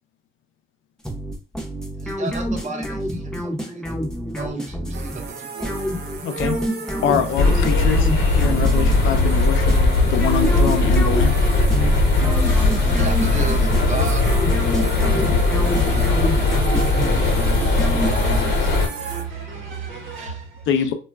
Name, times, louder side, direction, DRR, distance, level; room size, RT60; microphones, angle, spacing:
sound 1, 1.0-18.5, equal, 5° left, 0.7 m, -28 dB
voice 1, 2.0-4.0 4.3-5.9 12.9-17.9 18.2-18.9 20.2-20.4 20.8-20.9, right 3 dB, 35° right, 0.8 m, -36 dB
sound 2, 4.9-19.2, right 5 dB, 55° right, 0.5 m, -34 dB
voice 2, 6.2-6.6 7.0-9.7 10.0-11.4 15.1-15.4 20.7-20.9, left 7 dB, 80° left, 0.5 m, -24 dB
sound 3, 7.4-18.9, left 2 dB, 60° left, 0.9 m, -18 dB
voice 3, 18.6-20.7, right 6 dB, 90° right, 1.0 m, -35 dB
2.2 x 2.1 x 3.3 m
cardioid pair, 90°, 20 cm